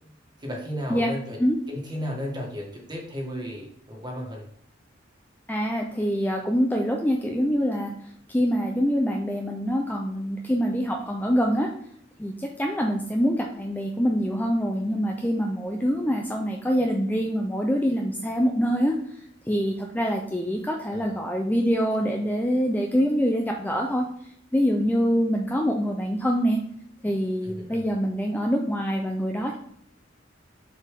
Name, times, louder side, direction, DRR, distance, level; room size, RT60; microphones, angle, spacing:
voice 1, 0.4-1.4 1.7-4.5 20.9-21.2 27.4-28.0, equal, 25° right, -1 dB, 1.7 m, -34 dB
voice 2, 5.5-7.9 8.3-11.7 12.2-19.0 19.5-24.1 24.5-26.6 27.0-29.6, equal, 10° left, 1 dB, 0.6 m, -25 dB
6.6 x 4.7 x 3.7 m, 0.67 s
head